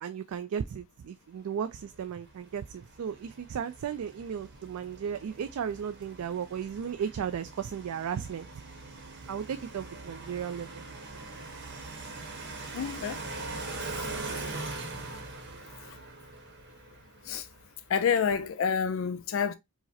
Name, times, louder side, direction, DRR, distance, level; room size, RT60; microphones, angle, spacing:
voice 1, 0.0-8.5 9.3-10.8, right 7 dB, 70° right, 0.3 m, -35 dB
sound 1, 1.8-17.9, right 3 dB, 50° right, 0.9 m, -42 dB
voice 2, 12.7-13.2 17.3-17.5 17.9-19.5, left 6 dB, 60° left, 0.4 m, -28 dB
4.7 x 2.1 x 2.7 m
head